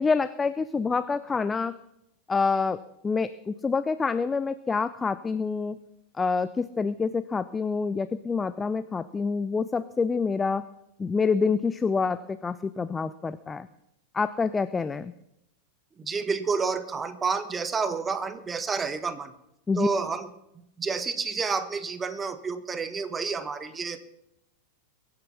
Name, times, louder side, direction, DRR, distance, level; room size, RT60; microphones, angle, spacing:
voice 1, 0.0-1.8 2.3-5.8 6.2-10.7 11.0-13.7 14.1-15.1 19.7-19.9, left 4 dB, 15° left, 15 dB, 0.5 m, -27 dB
voice 2, 16.0-19.3 19.8-20.3 20.8-24.0, right 5 dB, 15° right, 12 dB, 1.3 m, -29 dB
22.5 x 9.6 x 5.7 m, 0.84 s
figure-of-eight pair, 90°, 0 cm